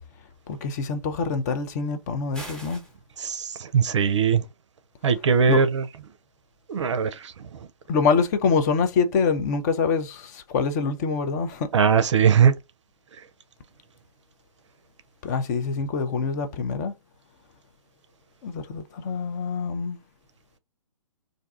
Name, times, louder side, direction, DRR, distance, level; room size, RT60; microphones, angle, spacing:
voice 1, 0.5-2.8 5.5-5.6 7.9-11.7 15.2-16.9 18.4-20.0, left 5 dB, 30° left, 0.5 m, -25 dB
sound 1, 2.3-2.9, right 1 dB, 5° left, 0.8 m, -40 dB
voice 2, 3.2-4.4 5.0-5.8 6.7-7.3 11.7-12.5, right 7 dB, 55° right, 0.5 m, -20 dB
2.5 x 2.3 x 3.7 m
figure-of-eight pair, 125°, 18 cm